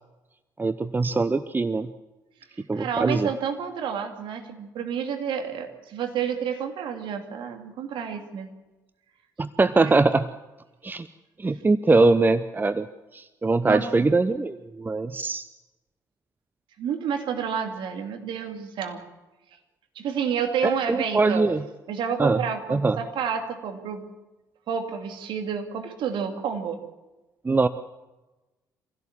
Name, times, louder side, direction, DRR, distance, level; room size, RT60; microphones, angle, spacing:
voice 1, 0.6-1.9 2.7-3.3 9.4-10.3 10.8-11.1 11.4-12.9 13.1-15.4 20.6-21.6 22.2-22.4 22.7-23.0 27.4-27.7, right 3 dB, 20° right, 13 dB, 0.8 m, -22 dB
voice 2, 2.7-8.5 9.8-9.9 13.6-13.8 16.8-19.0 19.9-21.5 21.9-24.1 24.7-26.8, right 7 dB, 55° right, 5 dB, 2.7 m, -30 dB
25.0 x 16.5 x 7.3 m, 1.1 s
figure-of-eight pair, 45°, 10 cm